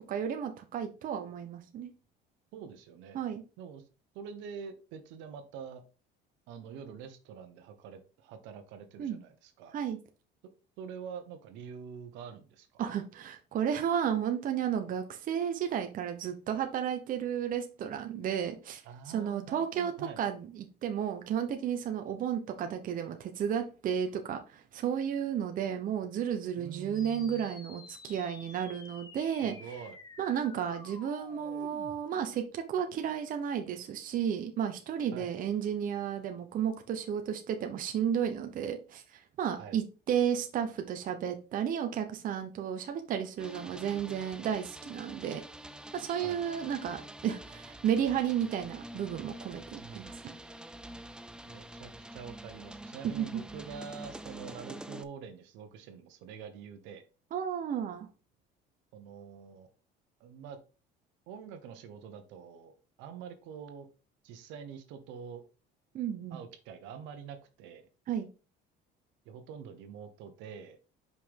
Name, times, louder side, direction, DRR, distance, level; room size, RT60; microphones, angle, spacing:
voice 1, 0.1-1.9 3.1-3.4 9.0-9.2 9.7-10.0 12.8-29.5 30.2-45.4 45.9-50.3 53.0-53.4 57.3-58.1 65.9-66.4 68.1-68.3, right 8 dB, 45° right, 0.9 m, -33 dB
voice 2, 2.5-3.2 3.6-3.8 4.1-5.8 6.5-9.7 10.8-12.7 18.8-20.2 26.6-27.5 29.4-30.0 35.1-35.3 39.5-39.8 46.2-46.4 49.8-50.2 51.4-57.0 58.9-59.7 60.2-60.6 61.3-63.9 64.2-65.4 66.3-67.9 69.2-70.8, right 7 dB, 80° right, 1.2 m, -46 dB
sound 1, 26.9-32.0, left 4 dB, 20° left, 0.9 m, -51 dB
sound 2, 43.4-55.0, right 1 dB, 5° right, 0.4 m, -46 dB
5.5 x 5.0 x 3.7 m
cardioid pair, 125°, 19 cm